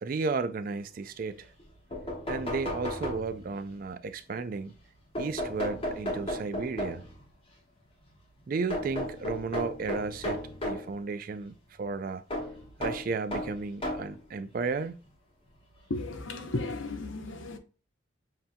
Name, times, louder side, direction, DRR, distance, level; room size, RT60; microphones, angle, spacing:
voice 1, 0.0-1.5 2.3-4.7 5.2-7.0 8.5-12.2 12.8-15.0, right 4 dB, 45° right, 0.3 m, -33 dB
sound 1, 1.6-1.7 1.9-3.7 5.2-7.2 8.7-10.9 12.3-14.2 15.0-15.1 16.5-16.6 16.9-17.0, left 1 dB, 25° left, 1.2 m, -34 dB
voice 2, 15.9-17.6, left 2 dB, 70° left, 0.8 m, -34 dB
7.5 x 2.8 x 2.2 m
head